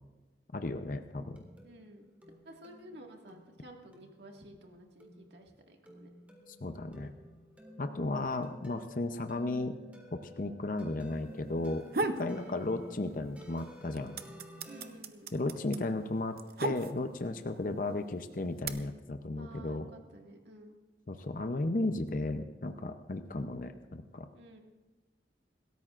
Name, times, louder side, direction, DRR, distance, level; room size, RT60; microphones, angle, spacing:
voice 1, 0.5-1.4 6.5-7.1 7.8-9.7 10.1-11.9 12.2-14.2 15.3-19.9 21.1-24.3, left 2 dB, 45° left, 7 dB, 0.7 m, -34 dB
sound 1, 1.0-14.9, equal, 10° right, 1.9 m, -53 dB
voice 2, 1.6-2.0 2.5-6.1 8.0-8.3 12.3-12.8 14.7-15.3 19.4-20.8 24.3-24.6, right 1 dB, 75° right, 1 dB, 1.9 m, -53 dB
sound 2, 11.6-12.3 12.7-13.4 13.7-17.3 18.0-18.7, right 3 dB, 55° right, 0.7 m, -35 dB
27.0 x 13.5 x 2.5 m, 1.2 s
head